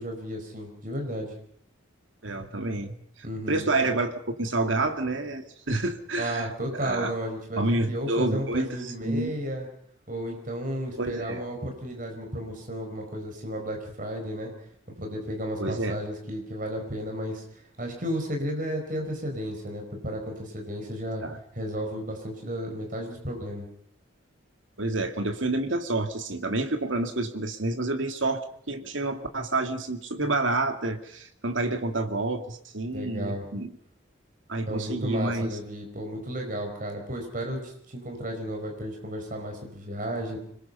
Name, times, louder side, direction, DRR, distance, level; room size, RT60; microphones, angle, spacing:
voice 1, 0.0-1.3 3.2-3.6 6.2-7.6 7.9-9.7 10.1-14.5 15.0-17.4 17.8-21.2 21.5-23.6 32.9-33.4 34.6-40.4, equal, 45° right, 2 dB, 4.9 m, -33 dB
voice 2, 2.2-3.0 3.5-7.1 7.6-9.3 11.0-11.4 15.6-16.0 21.2-21.4 24.8-33.7 34.5-35.6, right 2 dB, 80° right, 6 dB, 2.4 m, -28 dB
26.0 x 21.5 x 5.5 m, 0.67 s
head